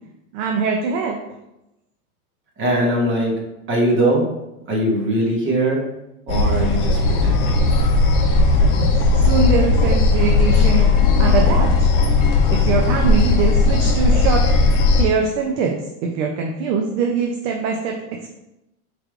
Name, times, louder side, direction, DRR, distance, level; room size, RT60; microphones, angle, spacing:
voice 1, 0.3-1.2 8.6-8.9 9.1-10.9 11.2-11.9 12.5-14.4 14.9-18.3, right 5 dB, 50° right, 2 dB, 0.6 m, -23 dB
voice 2, 2.6-3.4 3.7-4.3 4.7-5.9 6.3-7.7, right 1 dB, 25° right, -2 dB, 1.1 m, -21 dB
sound 1, 6.3-15.0, left 3 dB, 45° left, 0.7 m, -16 dB
4.4 x 3.3 x 2.4 m, 0.91 s
supercardioid pair, 125°, 44 cm